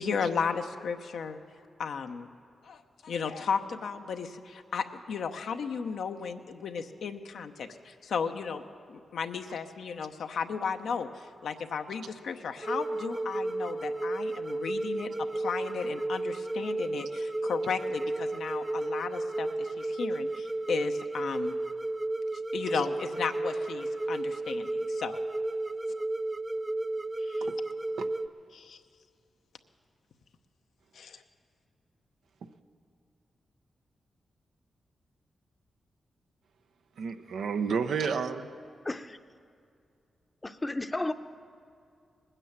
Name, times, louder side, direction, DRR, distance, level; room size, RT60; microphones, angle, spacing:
voice 1, 0.0-1.4 1.8-2.3 2.6-8.6 8.9-15.1 15.3-21.5 22.5-25.2 27.2-27.5 28.5-28.8 30.9-31.2, left 6 dB, 80° left, 6 dB, 0.8 m, -35 dB
sound 1, 12.6-28.3, right 2 dB, 30° right, 0.4 m, -33 dB
voice 2, 37.0-38.5, right 6 dB, 80° right, 7 dB, 0.7 m, -31 dB
voice 3, 38.8-39.2 40.4-41.1, left 2 dB, 25° left, 10 dB, 0.7 m, -32 dB
19.5 x 9.9 x 7.3 m, 2.5 s
supercardioid pair, 50°, 0 cm